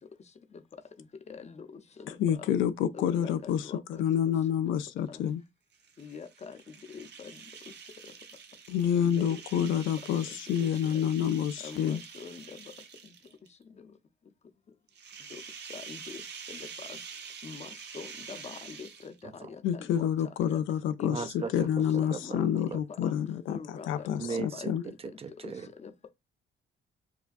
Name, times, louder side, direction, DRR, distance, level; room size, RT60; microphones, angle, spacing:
voice 1, 1.3-2.5 2.9-4.3 5.1-5.2 6.0-6.6 6.9-7.4 9.0-9.7 10.6-11.1 11.6-12.6 13.7-13.8 15.3-15.4 15.7-16.2 16.5-17.0 17.4-17.7 17.9-19.1 19.5-20.1 20.5-20.6 21.0-21.5 22.0-22.4 23.0-23.2 23.5-24.8 25.4-25.5 25.8-26.1, left 5 dB, 35° left, 0.6 m, -44 dB
voice 2, 2.2-3.7 4.0-5.4 8.7-12.0 19.6-23.6 23.9-24.8, left 9 dB, 80° left, 0.4 m, -28 dB
sound 1, 5.7-13.5 14.9-19.3, right 6 dB, 60° right, 0.8 m, -46 dB
voice 3, 21.0-22.8 24.2-24.7 25.0-25.7, right 5 dB, 30° right, 0.4 m, -38 dB
4.7 x 2.2 x 2.5 m
cardioid pair, 90°, 20 cm